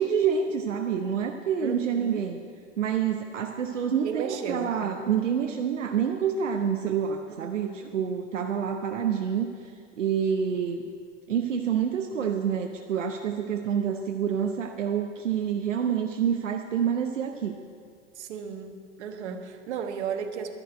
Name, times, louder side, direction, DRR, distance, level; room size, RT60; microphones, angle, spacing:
voice 1, 0.0-2.4 2.8-9.7 10.0-10.8 11.3-17.5, right 7 dB, 85° right, 4 dB, 0.8 m, -27 dB
voice 2, 1.6-2.2 4.0-4.7 7.5-7.9 18.1-20.5, right 7 dB, 65° right, 6 dB, 1.3 m, -34 dB
11.5 x 6.7 x 8.9 m, 2.3 s
hypercardioid pair, 110°, 36 cm